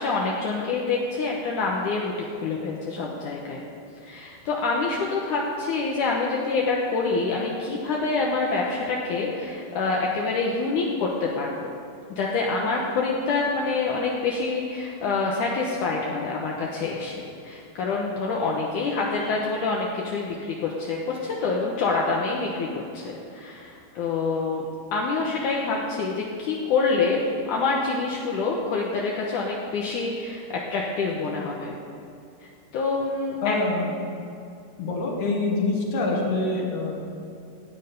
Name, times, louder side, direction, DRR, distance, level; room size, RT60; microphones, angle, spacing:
voice 1, 0.0-2.1 2.4-3.6 4.0-11.7 12.1-24.6 24.9-31.7 32.7-33.6, left 4 dB, 75° left, -2 dB, 1.8 m, -26 dB
voice 2, 33.4-33.9 34.8-37.0, left 3 dB, 60° left, 0 dB, 2.2 m, -25 dB
16.5 x 8.9 x 5.3 m, 2.6 s
omnidirectional pair, 5.1 m